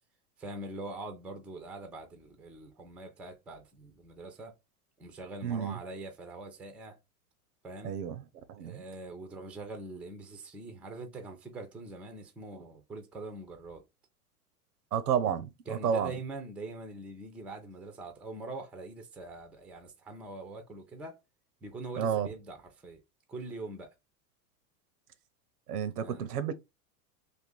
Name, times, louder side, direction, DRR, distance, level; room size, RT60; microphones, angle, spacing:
voice 1, 0.4-4.5 5.0-7.0 7.6-8.0 8.6-13.8 15.7-21.2 21.6-23.0 23.3-23.9 26.0-26.3, right 2 dB, 5° right, 0.3 m, -43 dB
voice 2, 5.4-5.8 7.8-8.2 8.5-8.8 14.9-16.1 21.9-22.3 25.7-26.5, right 8 dB, 85° right, 0.6 m, -31 dB
2.6 x 2.5 x 3.6 m
hypercardioid pair, 90°, 45 cm